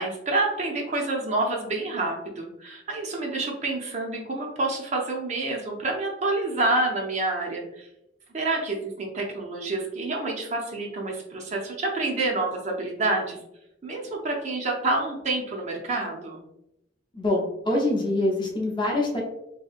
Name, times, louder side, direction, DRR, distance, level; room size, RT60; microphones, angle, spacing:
voice 1, 0.0-7.9 8.3-13.4 13.8-16.4, right 2 dB, 40° right, 0 dB, 0.5 m, -28 dB
voice 2, 17.1-19.2, left 1 dB, 25° left, -1 dB, 0.6 m, -25 dB
2.8 x 2.7 x 2.4 m, 0.83 s
head